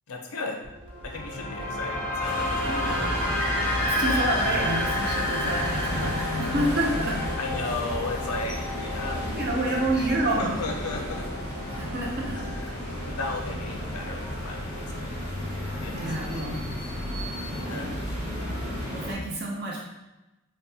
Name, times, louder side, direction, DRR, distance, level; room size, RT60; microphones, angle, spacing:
voice 1, 0.1-0.7 1.0-3.4 4.1-4.2 7.4-10.1 10.4-11.4 12.3-12.4 13.1-15.3 15.8-16.4 17.7-17.9, left 3 dB, 85° left, 2 dB, 0.6 m, -35 dB
sound 1, 0.6-16.6, left 1 dB, 75° right, 1.4 m, -34 dB
sound 2, 2.2-19.1, equal, 25° right, 1.2 m, -33 dB
sound 3, 2.6-9.9, left 1 dB, 10° left, 0.5 m, -32 dB
voice 2, 2.6-3.0 3.8-6.1 6.4-7.2 9.3-10.6 11.7-12.5 15.9-16.6 17.7-17.9 18.9-19.8, right 1 dB, 45° right, -3 dB, 0.6 m, -29 dB
5.1 x 2.2 x 2.8 m, 1.0 s
head